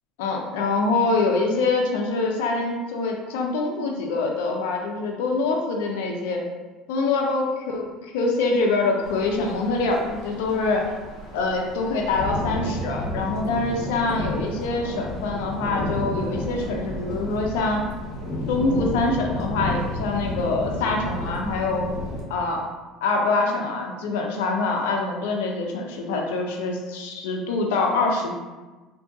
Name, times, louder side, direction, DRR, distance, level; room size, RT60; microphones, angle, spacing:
voice 1, 0.2-6.4 6.9-10.9 11.3-17.8 18.5-22.0 22.3-22.7 23.0-28.3, left 3 dB, 85° left, 1 dB, 0.5 m, -25 dB
sound 1, 9.0-22.2, left 1 dB, 65° left, 1.0 m, -31 dB
2.6 x 2.4 x 3.7 m, 1.2 s
supercardioid pair, 95°, 0 cm